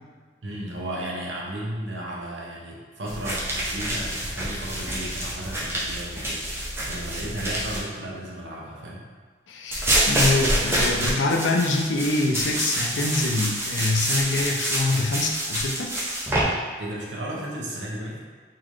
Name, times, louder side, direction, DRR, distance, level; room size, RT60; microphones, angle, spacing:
voice 1, 0.4-9.1 16.8-18.2, right 1 dB, 80° right, -3 dB, 0.8 m, -34 dB
sound 1, 3.1-7.8 9.7-16.4, right 1 dB, 15° right, 0.5 m, -27 dB
voice 2, 9.5-16.0, left 2 dB, 80° left, 2 dB, 0.4 m, -25 dB
3.8 x 2.4 x 3.1 m, 1.5 s
head